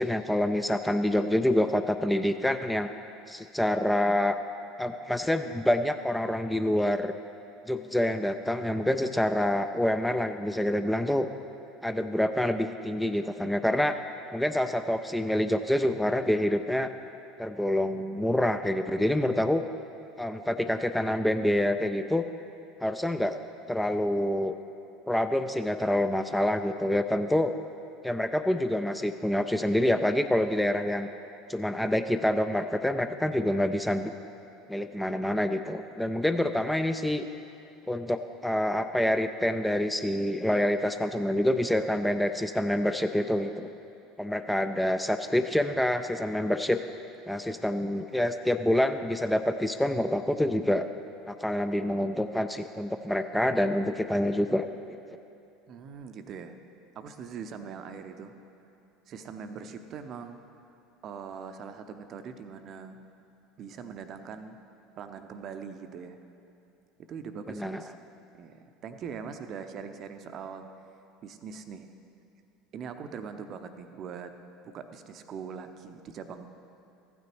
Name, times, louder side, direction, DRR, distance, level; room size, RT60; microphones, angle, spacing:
voice 1, 0.0-2.9 3.3-4.4 4.8-7.1 7.7-11.3 11.8-14.0 14.3-16.9 17.4-19.6 20.2-22.2 22.8-23.4 23.7-24.5 25.1-27.5 28.0-31.1 31.5-34.1 34.7-37.3 37.9-43.7 44.2-46.8 47.3-50.9 51.3-54.7 67.5-67.8, left 1 dB, 5° left, 8 dB, 0.4 m, -27 dB
voice 2, 55.7-56.6 57.0-58.3 59.1-60.4 61.0-63.0 63.6-64.6 65.0-66.2 67.0-67.9 68.3-70.7 71.2-71.9 72.7-74.4 74.6-76.5, right 6 dB, 40° right, 8 dB, 0.6 m, -41 dB
15.0 x 9.3 x 3.1 m, 2.7 s
figure-of-eight pair, 70°, 0 cm